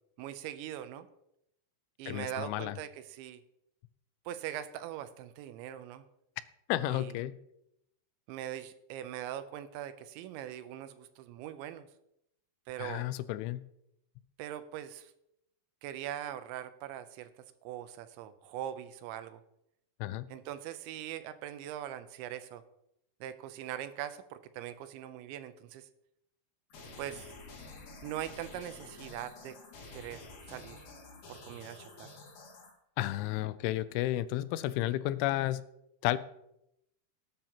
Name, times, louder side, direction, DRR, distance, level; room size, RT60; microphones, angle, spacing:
voice 1, 0.2-1.1 2.0-3.4 4.3-6.0 6.8-7.1 8.3-11.9 12.7-13.1 14.4-15.1 15.8-17.3 17.6-19.4 20.3-22.6 23.2-25.9 27.0-27.2 28.0-29.6 29.9-30.8 31.3-32.1, right 11 dB, 80° right, 11 dB, 2.9 m, -41 dB
voice 2, 2.1-2.8 6.7-7.4 12.8-13.6 20.0-20.3 33.0-35.6 36.0-36.2, left 15 dB, 85° left, 15 dB, 3.0 m, -32 dB
sound 1, 26.7-32.7, left 3 dB, 50° left, 3.4 m, -50 dB
19.0 x 9.1 x 2.9 m, 0.80 s
omnidirectional pair, 5.4 m